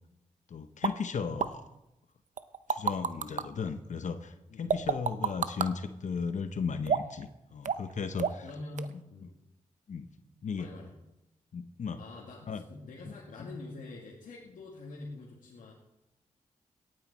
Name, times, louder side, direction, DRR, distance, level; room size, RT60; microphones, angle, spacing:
voice 1, 0.5-1.6 2.7-8.4 9.9-10.1 10.4-10.7 11.5-12.0 12.5-12.6 13.1-13.2, left 5 dB, 65° left, 9 dB, 0.9 m, -35 dB
sound 1, 0.8-0.9 1.4-1.5 2.4-3.4 4.7-5.7 6.9-7.2 7.6-7.9 8.2-8.5 8.8-8.9, right 7 dB, 70° right, 0.7 m, -29 dB
voice 2, 4.5-4.8 8.1-9.3 10.6-10.9 12.0-15.7, left 2 dB, 90° left, -4 dB, 2.2 m, -45 dB
17.5 x 9.4 x 4.3 m, 0.88 s
cardioid pair, 60°, 13 cm